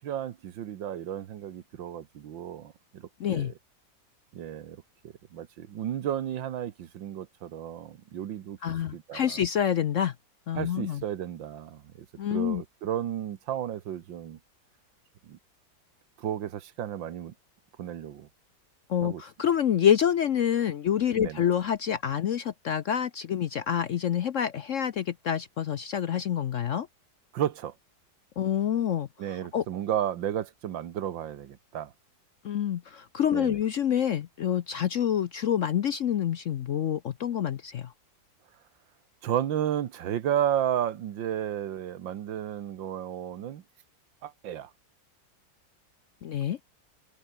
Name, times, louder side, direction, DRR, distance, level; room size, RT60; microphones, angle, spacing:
voice 1, 0.0-3.5 4.3-4.8 5.3-8.6 8.9-9.4 10.5-11.8 12.3-14.4 15.3-15.4 16.2-17.3 17.8-18.3 19.0-19.2 21.2-21.4 27.3-27.7 29.2-31.9 33.3-33.6 39.2-43.6 44.2-44.7, right 10 dB, 85° right, 1.9 m, -33 dB
voice 2, 3.2-3.5 8.6-10.1 10.5-11.0 12.2-12.6 18.9-26.9 28.4-29.1 29.5-29.6 32.4-37.9 46.2-46.6, left 9 dB, 60° left, 0.8 m, -27 dB
omnidirectional pair, 2.0 m